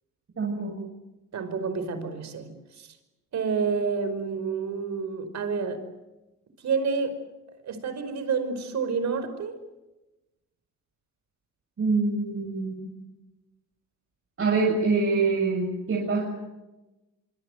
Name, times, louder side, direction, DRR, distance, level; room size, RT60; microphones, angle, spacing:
voice 1, 0.4-0.8 11.8-13.0 14.4-16.3, right 4 dB, 45° right, -1 dB, 7.4 m, -25 dB
voice 2, 1.3-2.9 3.3-5.8 6.6-7.2 7.6-9.6, right 5 dB, 65° right, 10 dB, 5.2 m, -29 dB
25.5 x 25.5 x 7.9 m, 1.0 s
cardioid pair, 90°, 30 cm